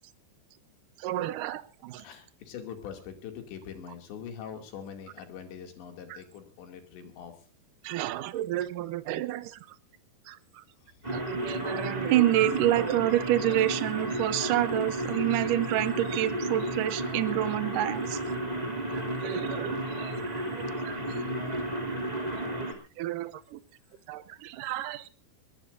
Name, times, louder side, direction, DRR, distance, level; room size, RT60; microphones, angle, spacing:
voice 1, 1.0-2.1 6.1-6.2 7.8-9.6 10.3-10.6 11.1-18.4 18.7-18.8 19.2-21.0 22.4-22.7 23.0-23.6 24.1-25.1, right 14 dB, 80° right, 13 dB, 1.9 m, -29 dB
voice 2, 2.0-7.4 10.8-11.2 20.9-22.0 22.2-22.4, left 8 dB, 80° left, 5 dB, 4.9 m, -44 dB
sound 1, 11.0-22.7, right 1 dB, 10° right, 2.2 m, -33 dB
21.5 x 20.0 x 2.7 m, 0.36 s
omnidirectional pair, 5.0 m